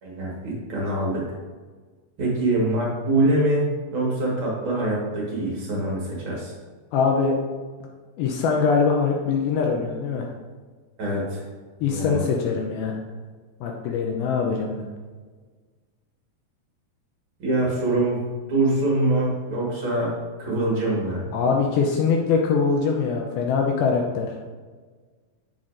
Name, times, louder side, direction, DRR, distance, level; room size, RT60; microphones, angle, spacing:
voice 1, 0.0-1.2 2.2-6.5 11.0-11.4 11.9-12.3 17.4-18.2 18.5-20.1 20.4-21.3, right 2 dB, 50° right, -4 dB, 1.6 m, -24 dB
voice 2, 6.9-7.4 8.2-10.3 11.8-13.0 13.6-14.9 21.3-24.4, left 5 dB, 80° left, 1 dB, 2.3 m, -23 dB
8.0 x 7.4 x 2.6 m, 1.4 s
omnidirectional pair, 4.7 m